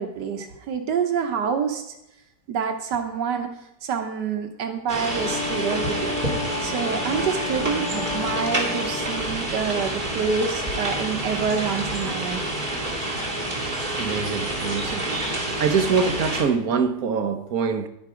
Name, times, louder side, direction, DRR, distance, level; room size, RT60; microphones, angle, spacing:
voice 1, 0.0-1.9 2.5-3.5 3.8-6.2 6.6-12.5, right 6 dB, 85° right, 1.6 m, -27 dB
sound 1, 4.9-16.4, right 1 dB, 30° right, 2.5 m, -28 dB
Wind instrument woodwind instrument, 5.1-9.3, left 5 dB, 60° left, 1.4 m, -32 dB
voice 2, 14.0-15.1 15.4-17.9, right 5 dB, 60° right, 1.4 m, -24 dB
11.5 x 9.6 x 5.0 m
omnidirectional pair, 1.8 m